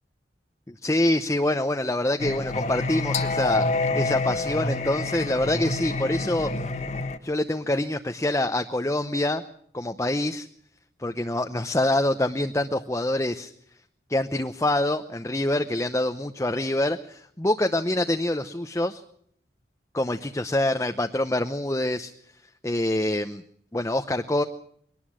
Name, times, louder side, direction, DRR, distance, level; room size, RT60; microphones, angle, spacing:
voice 1, 0.7-3.7 3.9-6.5 7.2-9.4 9.7-10.5 11.0-13.5 14.1-19.0 19.9-22.1 22.6-23.4 23.7-24.4, left 1 dB, 15° left, 7 dB, 0.8 m, -25 dB
Singing, 2.2-7.2, left 3 dB, 40° left, 1.3 m, -28 dB
22.0 x 19.0 x 6.3 m, 0.65 s
head